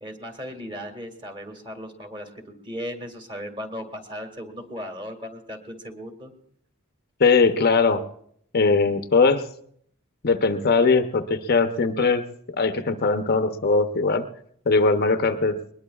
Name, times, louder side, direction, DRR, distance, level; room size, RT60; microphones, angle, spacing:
voice 1, 0.0-6.3, equal, 25° right, 5 dB, 1.9 m, -37 dB
voice 2, 7.2-8.0 8.5-9.4 10.2-12.2 12.6-14.3 14.7-15.6, left 4 dB, 45° left, 8 dB, 0.7 m, -20 dB
21.0 x 20.5 x 2.3 m, 0.66 s
head